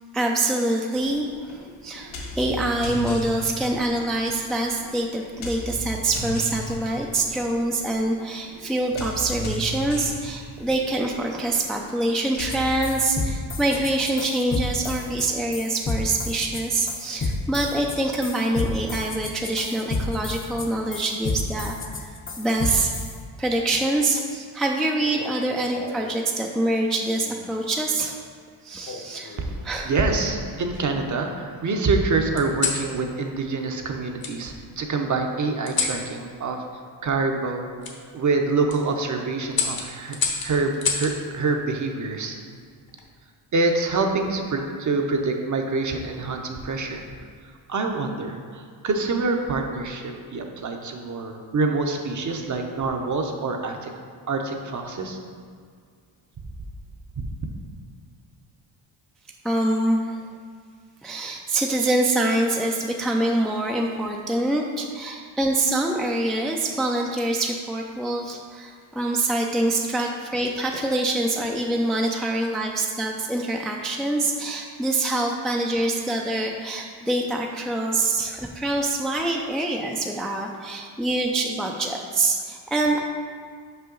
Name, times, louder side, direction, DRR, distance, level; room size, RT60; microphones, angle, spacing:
voice 1, 0.1-21.8 22.0-22.9 23.4-28.2 28.6-29.4 29.6-29.9 59.4-60.2 61.0-83.0, right 2 dB, ahead, 1 dB, 0.4 m, -25 dB
sound 1, 1.0-12.9, right 1 dB, 90° left, 1.1 m, -36 dB
sound 2, 12.5-12.6 12.8-23.1, left 3 dB, 25° left, 0.7 m, -30 dB
sound 3, 25.0-26.1 27.2-27.6 28.8-29.6 30.2-31.1 32.4-32.9 34.2-34.4 35.7-36.0 37.8-38.0 38.5-38.8 39.5-41.2 42.7-43.1, left 5 dB, 50° left, 1.1 m, -30 dB
voice 2, 29.8-36.6 37.0-37.7 38.1-40.2 40.4-42.3 43.5-47.0 47.7-53.9 54.3-55.2, right 3 dB, 40° right, 3 dB, 0.8 m, -26 dB
5.7 x 5.3 x 3.9 m, 2.1 s
cardioid pair, 85°, 46 cm